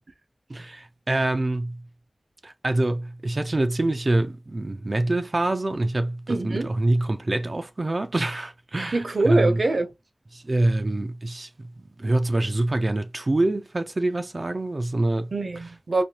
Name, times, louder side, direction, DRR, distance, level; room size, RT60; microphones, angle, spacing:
voice 1, 0.5-1.8 2.4-9.6 10.3-11.5 12.0-15.3, right 2 dB, 45° right, 0.4 m, -25 dB
voice 2, 6.3-6.7 8.9-9.9 15.3-16.0, right 2 dB, 70° right, 0.8 m, -24 dB
4.2 x 2.7 x 2.9 m
wide cardioid pair, 60°, 0 cm